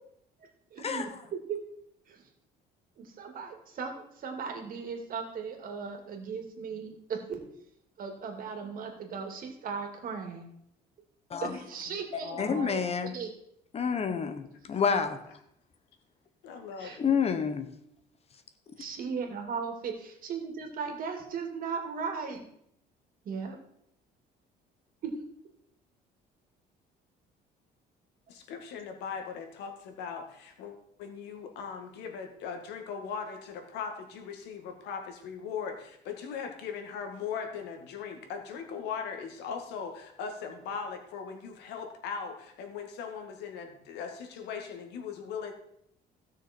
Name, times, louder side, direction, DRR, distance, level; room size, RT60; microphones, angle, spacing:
voice 1, 0.7-1.6 2.1-2.2 3.0-7.4 8.0-10.5 11.4-13.3 16.8-17.0 18.8-22.4 23.2-23.6 25.0-25.1, right 6 dB, 55° right, 3 dB, 2.6 m, -37 dB
voice 2, 11.9-12.8 15.3-15.4 16.4-17.2 28.3-45.5, left 6 dB, 85° left, 5 dB, 2.1 m, -39 dB
voice 3, 12.4-13.1 13.7-15.2 17.0-17.7, left 6 dB, 35° left, 10 dB, 1.3 m, -28 dB
16.0 x 6.4 x 4.5 m, 0.74 s
cardioid pair, 110°, 17 cm